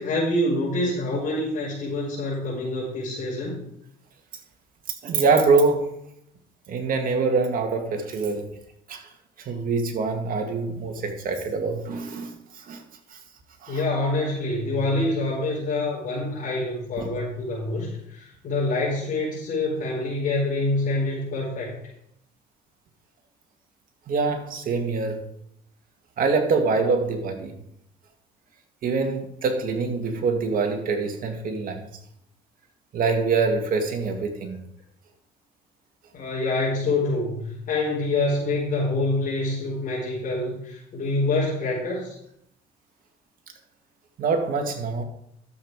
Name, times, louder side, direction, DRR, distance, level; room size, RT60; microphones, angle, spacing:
voice 1, 0.0-3.5 13.7-21.7 36.1-42.1, left 2 dB, 55° left, -5 dB, 4.7 m, -26 dB
voice 2, 5.0-5.9 6.7-8.5 8.9-9.0 9.4-12.3 12.7-12.8 13.1-13.2 13.6-13.8 17.0-17.1 24.1-25.2 26.2-27.5 28.8-31.9 32.9-34.6 44.2-45.0, right 4 dB, 55° right, 4 dB, 2.2 m, -24 dB
12.0 x 7.5 x 4.9 m, 0.75 s
cardioid pair, 110°, 17 cm